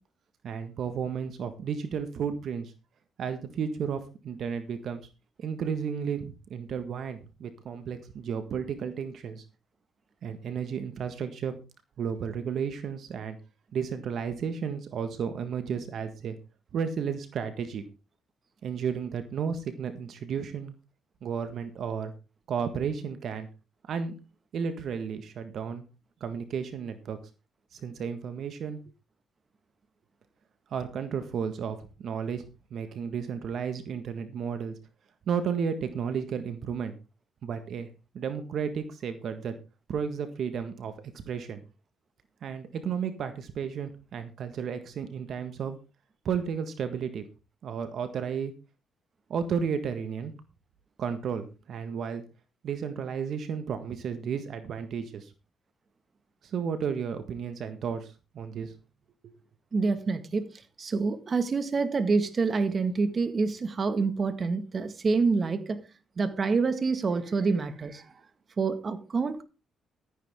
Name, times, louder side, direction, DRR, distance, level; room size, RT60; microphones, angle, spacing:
voice 1, 0.4-2.7 3.2-5.0 5.4-9.4 10.2-11.6 12.0-13.4 13.7-16.4 16.7-17.8 18.6-20.7 21.2-22.1 22.5-23.5 23.9-24.1 24.5-25.8 26.2-27.2 27.7-28.8 30.7-32.4 32.7-34.8 35.3-36.9 37.4-37.9 38.1-39.5 39.9-40.9 41.3-41.6 42.4-45.8 46.2-47.2 47.6-48.5 49.3-50.3 51.0-52.2 52.6-55.3 56.4-58.7, right 7 dB, 65° right, 1.6 m, -33 dB
voice 2, 59.7-60.5 60.8-65.8 66.2-68.0 68.6-69.4, right 4 dB, 40° right, 1.8 m, -27 dB
13.5 x 9.9 x 3.7 m
cardioid pair, 90°, 0 cm